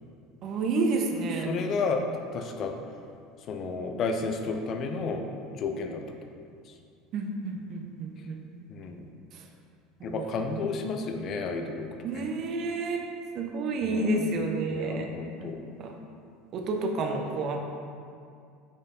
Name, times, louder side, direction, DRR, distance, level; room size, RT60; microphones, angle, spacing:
voice 1, 0.4-1.5 7.1-8.4 10.0-10.3 12.0-13.1 13.3-15.5 15.8-15.9 16.5-17.6, right 3 dB, 45° right, 3 dB, 0.9 m, -30 dB
voice 2, 1.5-2.0 2.3-2.8 3.5-5.2 5.6-6.0 8.7-9.1 10.0-11.9 12.1-12.2 13.8-14.3 14.7-15.6, left 4 dB, 40° left, 5 dB, 0.8 m, -31 dB
8.4 x 5.5 x 4.0 m, 2.3 s
figure-of-eight pair, 70°, 0 cm